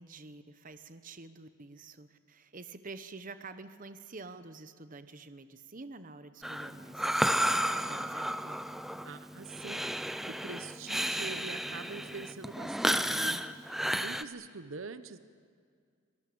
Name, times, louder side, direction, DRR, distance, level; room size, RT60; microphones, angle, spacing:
voice 1, 0.0-8.6, right 3 dB, 40° right, 11 dB, 0.9 m, -48 dB
Breathing, 6.4-14.2, equal, ahead, 0.5 m, -32 dB
voice 2, 9.0-9.8 10.3-13.4 13.7-15.2, right 4 dB, 65° right, 12 dB, 0.9 m, -44 dB
25.5 x 18.5 x 8.6 m, 2.1 s
head